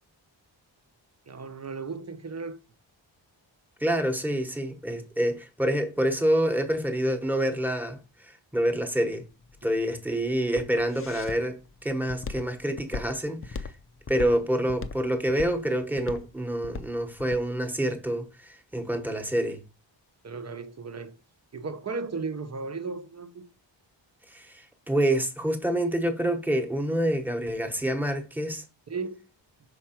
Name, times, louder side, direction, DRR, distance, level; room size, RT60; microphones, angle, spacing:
voice 1, 1.3-2.6 9.6-9.7 20.2-21.2 21.5-23.5 28.9-29.3, right 4 dB, 35° right, 0.7 m, -35 dB
voice 2, 3.8-9.2 9.6-13.7 14.1-19.6 24.3-28.6, right 1 dB, 5° right, 1.1 m, -27 dB
Walk footsteps, 9.3-17.5, left 4 dB, 30° left, 0.5 m, -39 dB
6.0 x 4.7 x 4.4 m
wide cardioid pair, 150°, 46 cm